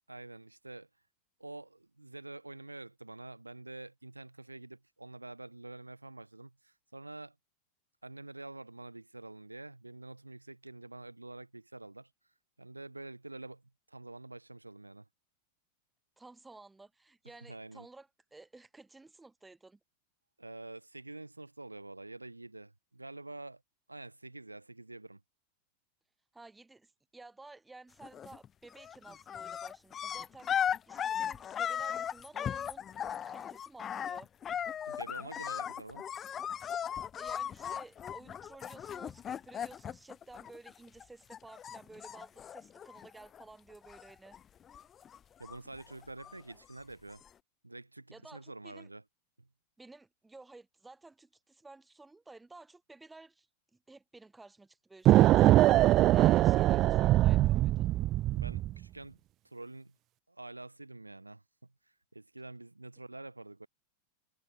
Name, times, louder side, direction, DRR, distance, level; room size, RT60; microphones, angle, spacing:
voice 1, 0.1-0.9 1.4-7.3 8.0-12.1 12.6-13.6 13.9-15.0 17.5-17.9 20.4-23.6 23.9-25.2 34.9-36.1 45.4-47.2 47.6-49.0 49.4-49.5 58.3-59.2 59.4-59.9 60.3-61.4 62.1-63.7, right 2 dB, 85° right, 2.9 m, -47 dB
voice 2, 16.2-19.8 26.3-34.3 37.0-44.3 48.1-48.9 49.8-53.5 53.7-57.9, right 3 dB, 10° right, 6.6 m, -54 dB
sound 1, 28.0-28.5 28.7-41.0 41.3-43.4 43.7-44.4 44.7-46.5 47.2-47.3, left 9 dB, 25° left, 0.7 m, -37 dB
sound 2, 55.1-58.8, right 15 dB, 35° right, 0.4 m, -23 dB
figure-of-eight pair, 90°, 0 cm